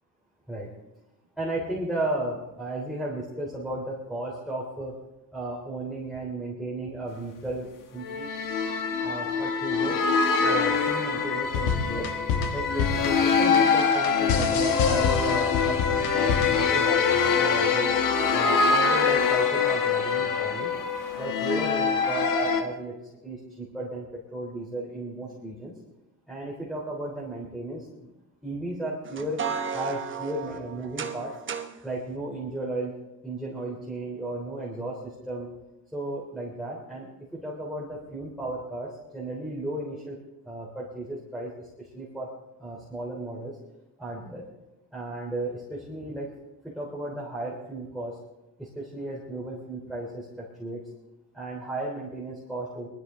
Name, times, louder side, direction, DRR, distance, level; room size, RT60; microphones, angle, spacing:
voice 1, 1.4-4.9 5.3-8.3 9.0-10.0 10.4-12.1 12.5-17.9 18.3-20.7 21.2-22.9 23.2-25.8 26.3-28.1 28.4-31.3 31.8-32.9 33.2-35.5 35.9-40.2 40.4-42.3 42.6-43.6 44.0-44.4 44.9-46.3 46.6-48.2 48.6-50.8 51.3-52.9, right 2 dB, ahead, -5 dB, 3.3 m, -34 dB
sound 1, 8.0-22.6, left 5 dB, 50° left, 1.5 m, -24 dB
sound 2, 11.5-16.7, left 6 dB, 80° left, 1.8 m, -28 dB
sound 3, 29.1-31.8, right 6 dB, 30° right, 1.0 m, -34 dB
20.0 x 13.0 x 3.7 m, 0.99 s
cardioid pair, 110°, 40 cm